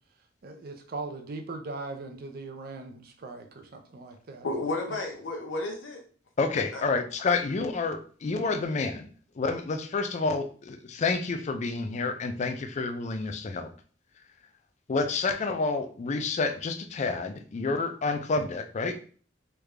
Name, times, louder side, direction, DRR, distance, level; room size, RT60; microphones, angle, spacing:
voice 1, 0.4-4.5 4.9-5.0, right 3 dB, 55° right, 5 dB, 0.5 m, -40 dB
voice 2, 4.4-6.0 6.7-6.8, left 2 dB, 90° left, 1 dB, 0.8 m, -32 dB
voice 3, 6.4-9.1 9.4-13.7 14.9-19.0, left 4 dB, 40° left, 7 dB, 0.4 m, -29 dB
3.3 x 2.4 x 3.2 m, 0.42 s
head